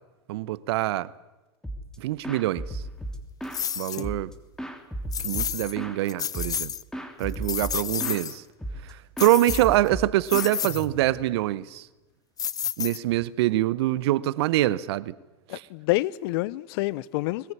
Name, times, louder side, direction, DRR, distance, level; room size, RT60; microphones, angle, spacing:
voice 1, 0.3-1.1 2.0-2.8 3.8-4.3 5.2-6.7 7.2-8.4 8.8-11.9 12.8-15.1 15.5-15.6, right 15 dB, 65° right, 1.0 m, -25 dB
sound 1, 1.6-2.0 2.2-3.7 4.0-6.0 6.3-6.7 6.9-8.2 8.6-8.9 9.2-11.2, right 1 dB, 5° left, 3.1 m, -35 dB
sound 2, 3.5-4.1 5.1-5.7 6.1-6.8 7.2-8.4 9.2-9.9 10.3-10.9 12.4-13.2, left 8 dB, 25° left, 0.7 m, -30 dB
voice 2, 15.5-17.5, left 19 dB, 60° left, 0.8 m, -28 dB
21.5 x 19.5 x 9.8 m
hypercardioid pair, 95°, 14 cm